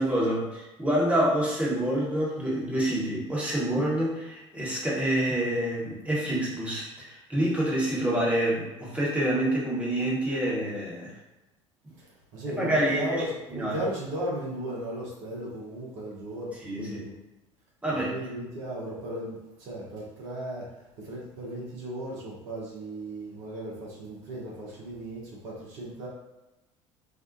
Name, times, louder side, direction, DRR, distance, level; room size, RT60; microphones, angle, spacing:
voice 1, 0.0-11.2 11.8-11.9 12.5-13.2 13.5-13.8 16.6-17.0 17.8-18.1, right 1 dB, 10° right, -6 dB, 1.0 m, -27 dB
voice 2, 11.9-17.1 17.9-20.7 21.0-26.1, right 1 dB, 60° right, -5 dB, 0.8 m, -36 dB
2.6 x 2.3 x 2.5 m, 1.0 s
figure-of-eight pair, 60°, 16 cm